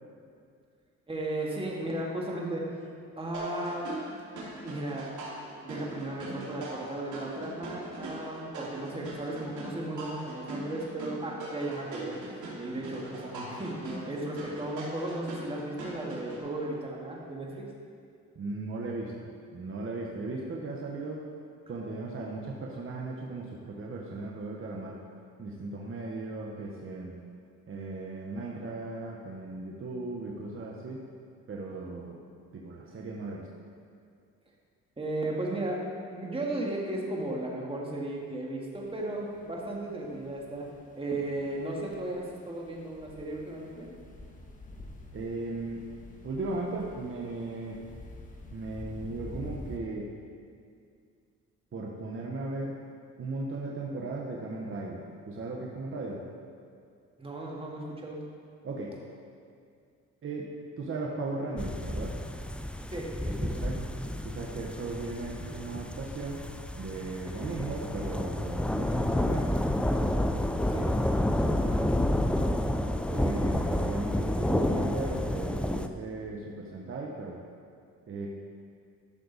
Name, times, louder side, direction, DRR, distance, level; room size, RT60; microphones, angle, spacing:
voice 1, 1.1-2.7 3.2-3.9 4.6-5.1 5.6-12.2 12.6-17.7 35.0-35.8 36.1-40.7 41.0-43.9 57.2-58.2 62.9-63.6 70.7-70.9, right 1 dB, 20° right, -3 dB, 1.9 m, -35 dB
sound 1, 3.3-16.4, right 2 dB, 75° right, 2.5 m, -41 dB
voice 2, 18.3-19.1 19.5-21.2 21.7-25.0 25.4-27.1 27.7-31.0 31.5-32.2 32.5-33.5 45.1-45.8 46.2-47.8 48.5-50.1 51.7-52.8 53.2-55.0 55.3-56.2 58.6-59.0 60.2-62.1 63.4-63.8 64.2-66.4 66.8-69.5 71.5-71.8 72.3-72.6 73.1-77.4 78.1-78.3, right 3 dB, 45° right, -2 dB, 1.2 m, -37 dB
sound 2, 38.8-49.8, left 1 dB, 25° left, 1.2 m, -48 dB
sound 3, 61.6-75.9, left 1 dB, 5° left, 0.4 m, -29 dB
12.0 x 6.6 x 4.1 m, 2.3 s
cardioid pair, 90°, 30 cm